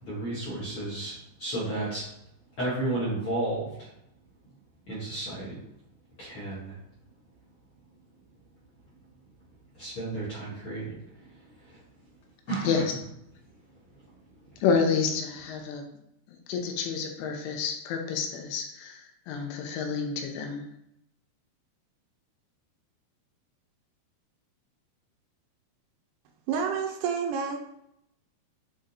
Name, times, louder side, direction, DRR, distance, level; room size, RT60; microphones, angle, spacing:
voice 1, 0.0-2.1 2.6-3.9 4.9-5.6 6.2-6.8 9.7-11.8 12.5-12.7, right 2 dB, 45° left, -9 dB, 1.8 m, -33 dB
voice 2, 14.6-15.8 16.5-20.6, left 5 dB, 80° left, 3 dB, 3.3 m, -29 dB
voice 3, 26.5-27.6, right 6 dB, 80° right, 3 dB, 2.9 m, -29 dB
8.2 x 3.9 x 4.0 m, 0.79 s
omnidirectional pair, 5.6 m